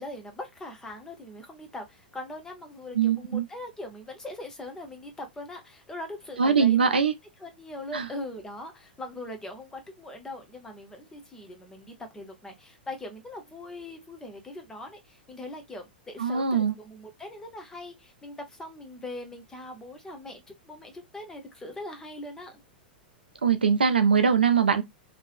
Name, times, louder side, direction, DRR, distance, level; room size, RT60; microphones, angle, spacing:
voice 1, 0.0-7.1 7.4-22.6, left 1 dB, 10° left, 0.9 m, -41 dB
voice 2, 2.9-3.4 6.4-7.1 7.9-8.1 16.2-16.7 23.4-24.8, right 6 dB, 75° right, 0.5 m, -22 dB
3.0 x 2.9 x 2.4 m
figure-of-eight pair, 100°, 5 cm